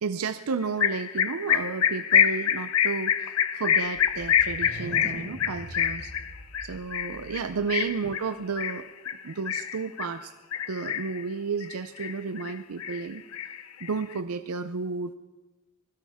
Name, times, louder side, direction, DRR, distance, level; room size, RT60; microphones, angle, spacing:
voice 1, 0.0-6.1 6.6-8.9 9.2-10.3 10.7-13.2 13.8-15.1, right 5 dB, 85° right, 10 dB, 0.5 m, -32 dB
sound 1, 0.8-10.1 10.5-11.2 11.6-12.5 12.8-14.1, left 9 dB, 80° left, 0.6 m, -26 dB
sound 2, 3.8-7.6, equal, 30° left, 3.8 m, -43 dB
20.5 x 16.0 x 3.6 m, 1.1 s
head